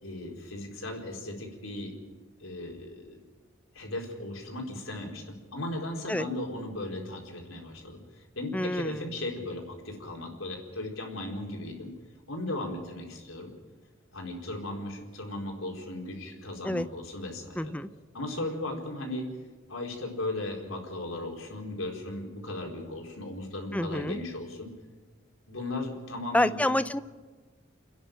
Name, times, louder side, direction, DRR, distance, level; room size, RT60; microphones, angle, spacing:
voice 1, 0.0-1.9 2.4-3.2 3.7-11.9 12.3-13.5 14.1-17.7 18.1-19.3 19.7-24.7 25.5-26.6, left 2 dB, 85° left, 1 dB, 4.4 m, -37 dB
voice 2, 8.5-9.1 16.6-16.9 17.6-17.9 23.7-24.2 26.3-27.0, left 1 dB, 5° left, 13 dB, 0.5 m, -28 dB
30.0 x 10.5 x 9.0 m, 1.4 s
head